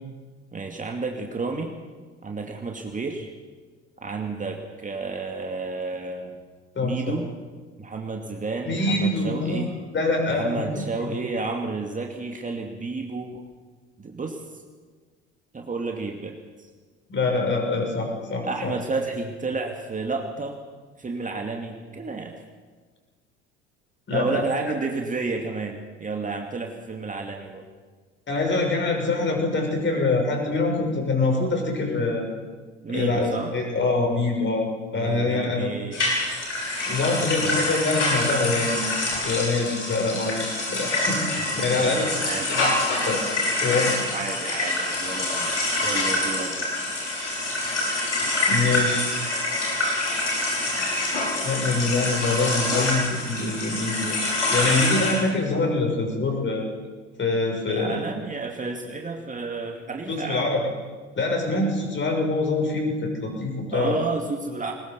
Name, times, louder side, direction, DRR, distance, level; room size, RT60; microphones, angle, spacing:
voice 1, 0.5-1.8 2.2-3.3 4.0-6.4 6.8-7.3 7.8-9.7 10.3-13.4 14.0-14.4 15.5-16.7 18.4-20.6 21.0-22.4 24.1-27.7 32.8-33.6 34.9-36.1 37.2-37.8 41.3-41.5 41.8-42.5 44.1-45.5 45.8-46.7 57.7-60.5 63.7-64.7, right 3 dB, 20° right, 2 dB, 2.5 m, -31 dB
voice 2, 6.7-7.2 8.6-9.6 9.9-11.2 17.1-18.7 24.1-24.4 28.3-32.3 32.9-34.7 34.9-35.7 36.9-42.1 42.5-43.2 43.6-43.9 48.2-49.1 51.4-54.2 54.5-56.7 57.2-58.0 60.1-60.7 61.2-64.0, left 3 dB, 35° left, 2 dB, 6.7 m, -25 dB
sound 1, 35.9-55.1, left 2 dB, 85° left, 5.7 m, -26 dB
21.0 x 20.5 x 7.0 m, 1.4 s
figure-of-eight pair, 60°, 35 cm